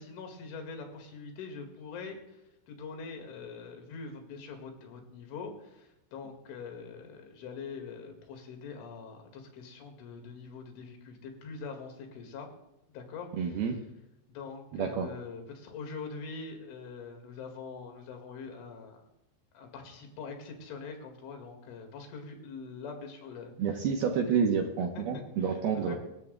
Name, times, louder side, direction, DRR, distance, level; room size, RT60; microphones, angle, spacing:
voice 1, 0.0-2.4 2.7-12.5 12.9-13.8 14.3-19.0 19.5-23.5 24.3-24.4 25.0-26.0, left 5 dB, 80° left, 4 dB, 4.4 m, -43 dB
voice 2, 13.4-13.8 14.7-15.1 23.6-25.9, right 6 dB, 75° right, 3 dB, 2.4 m, -29 dB
25.0 x 13.5 x 2.4 m, 0.92 s
omnidirectional pair, 5.5 m